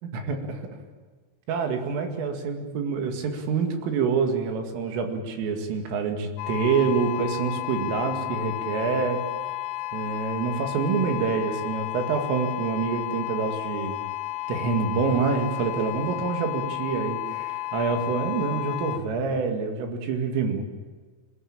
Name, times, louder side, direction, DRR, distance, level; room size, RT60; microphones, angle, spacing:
voice 1, 0.1-0.6 1.5-9.2 9.9-14.0 14.5-20.6, right 5 dB, 85° right, 4 dB, 4.8 m, -26 dB
sound 1, 6.4-19.0, left 16 dB, 80° left, 3.6 m, -32 dB
26.5 x 19.0 x 8.8 m, 1.4 s
omnidirectional pair, 5.7 m